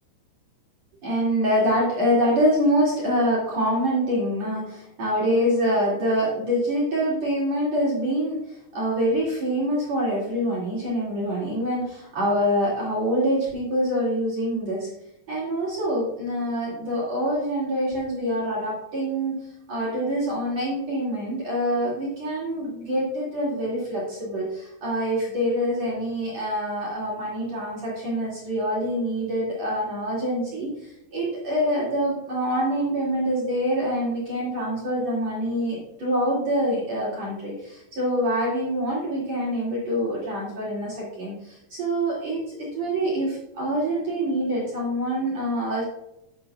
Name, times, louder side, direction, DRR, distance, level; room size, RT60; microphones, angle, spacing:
voice 1, 1.0-14.9 15.3-19.4 19.7-45.8, equal, 45° right, -5 dB, 2.9 m, -25 dB
10.0 x 9.6 x 2.3 m, 0.85 s
omnidirectional pair, 5.1 m